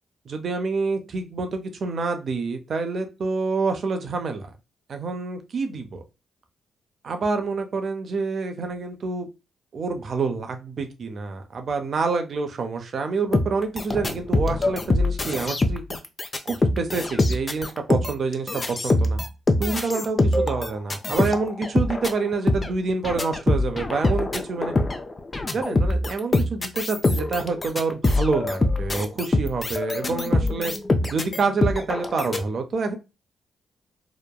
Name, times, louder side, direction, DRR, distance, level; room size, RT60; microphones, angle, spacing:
voice 1, 0.3-4.5 4.9-6.0 7.0-9.3 9.7-16.0 16.5-19.2 19.6-24.7 25.5-30.7 31.1-33.0, right 4 dB, 60° right, 6 dB, 0.5 m, -27 dB
sound 1, 13.3-32.4, left 2 dB, 35° left, 0.4 m, -24 dB
2.8 x 2.2 x 2.2 m, 0.27 s
hypercardioid pair, 45°, 0 cm